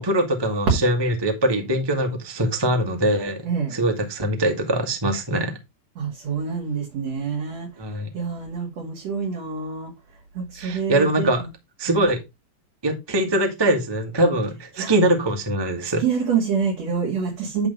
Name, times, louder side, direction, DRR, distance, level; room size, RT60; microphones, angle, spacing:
voice 1, 0.0-5.6 7.8-8.1 10.5-11.4 11.8-12.2 12.8-16.0, right 1 dB, 25° right, 0.5 m, -22 dB
voice 2, 3.4-3.7 6.0-7.7 8.1-9.9 10.3-11.5 11.9-12.0 14.8-14.9 15.8-17.7, right 6 dB, 50° right, 3.0 m, -27 dB
10.5 x 3.6 x 5.5 m
omnidirectional pair, 4.1 m